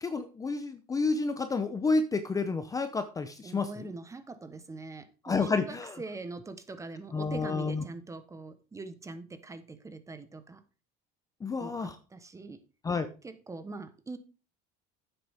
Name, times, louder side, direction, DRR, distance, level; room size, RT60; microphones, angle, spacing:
voice 1, 0.0-3.7 5.2-5.9 7.1-7.8 11.4-11.9 12.8-13.1, left 4 dB, 15° left, 10 dB, 0.6 m, -30 dB
voice 2, 3.4-10.6 11.6-12.6 13.2-14.2, right 3 dB, 15° right, 11 dB, 1.0 m, -43 dB
9.9 x 8.0 x 3.5 m, 0.33 s
cardioid pair, 135°, 21 cm